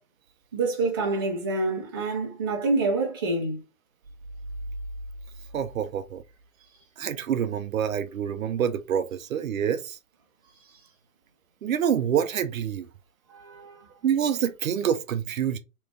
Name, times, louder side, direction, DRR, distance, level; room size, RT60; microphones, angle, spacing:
voice 1, 0.5-3.6 13.3-13.9, right 3 dB, 15° right, 0.5 m, -27 dB
voice 2, 5.5-6.2 7.0-10.0 11.6-12.9 14.0-15.6, right 8 dB, 70° right, 0.6 m, -27 dB
3.0 x 2.3 x 3.3 m
hypercardioid pair, 155°, 44 cm